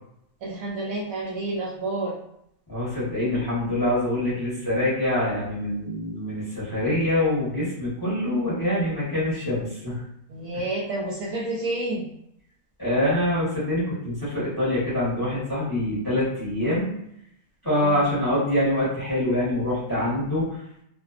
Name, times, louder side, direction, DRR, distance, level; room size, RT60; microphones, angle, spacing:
voice 1, 0.4-2.2 10.3-12.1 17.6-18.0, right 2 dB, 70° right, -3 dB, 0.9 m, -29 dB
voice 2, 2.7-10.0 12.8-16.9 17.6-20.4, left 1 dB, 20° left, -9 dB, 0.7 m, -25 dB
2.6 x 2.2 x 2.3 m, 0.76 s
omnidirectional pair, 1.7 m